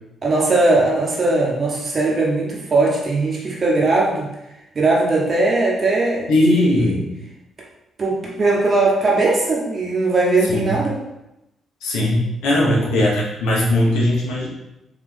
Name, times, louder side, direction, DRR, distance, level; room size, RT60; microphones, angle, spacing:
voice 1, 0.2-4.3 4.7-7.0 8.0-11.0 12.5-12.8, right 2 dB, 45° right, -3 dB, 1.0 m, -19 dB
voice 2, 6.3-7.0 10.5-10.7 11.8-14.5, left 1 dB, 75° left, -4 dB, 1.0 m, -19 dB
3.5 x 2.9 x 3.6 m, 0.90 s
hypercardioid pair, 45°, 0 cm